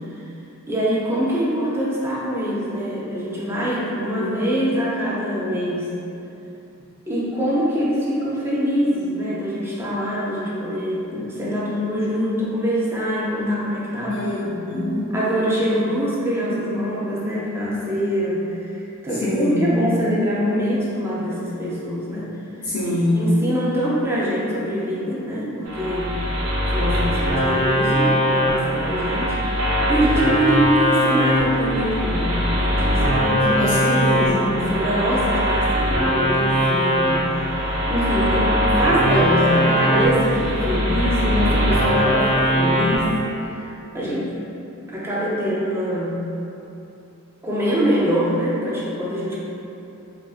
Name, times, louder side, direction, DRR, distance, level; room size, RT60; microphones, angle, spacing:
voice 1, 0.7-5.9 7.1-14.3 14.6-14.7 15.1-22.3 22.9-26.2 26.7-29.5 29.9-43.1 43.4-43.7 43.9-44.3 44.9-46.2 47.4-49.4, equal, 10° right, -7 dB, 0.4 m, -24 dB
voice 2, 4.0-4.5 14.1-15.1 19.2-19.8 22.6-23.4 33.6-34.5 35.9-36.0, left 1 dB, 60° left, -10 dB, 0.6 m, -24 dB
sound 1, 25.7-43.1, equal, 65° right, 0.5 m, -21 dB
3.4 x 2.5 x 2.4 m, 2.8 s
head